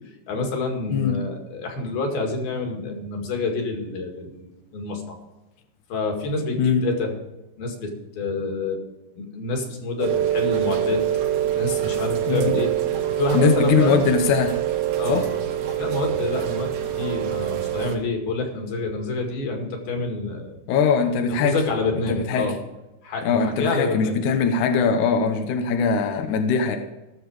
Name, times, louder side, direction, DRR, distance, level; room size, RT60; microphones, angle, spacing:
voice 1, 0.3-5.2 5.9-7.1 7.6-8.8 9.2-11.0 11.5-12.7 13.2-14.0 15.0-15.2 15.8-20.5 21.3-22.6 23.0-24.2, left 3 dB, 60° left, 2 dB, 3.7 m, -27 dB
voice 2, 0.9-1.2 6.6-6.9 12.3-12.6 13.3-14.6 15.1-15.3 20.7-21.6 22.0-22.5 23.2-26.8, left 5 dB, 75° left, 5 dB, 1.7 m, -21 dB
Rain, 10.0-18.0, right 12 dB, 65° right, 2.9 m, -25 dB
17.5 x 7.1 x 4.9 m, 1.0 s
omnidirectional pair, 5.1 m